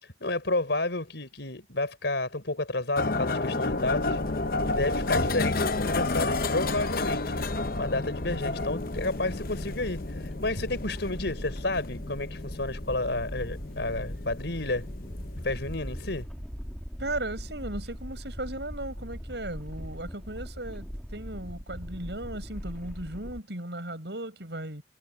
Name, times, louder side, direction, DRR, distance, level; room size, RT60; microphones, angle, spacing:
voice 1, 0.0-4.2 4.6-7.3 7.8-14.9 15.4-16.3, left 2 dB, 70° left, 4.2 m, -31 dB
sound 1, 3.0-16.2, left 3 dB, 50° left, 0.8 m, -31 dB
sound 2, 3.7-23.4, equal, 5° left, 2.0 m, -40 dB
voice 2, 17.0-24.8, right 1 dB, 65° right, 7.6 m, -36 dB
head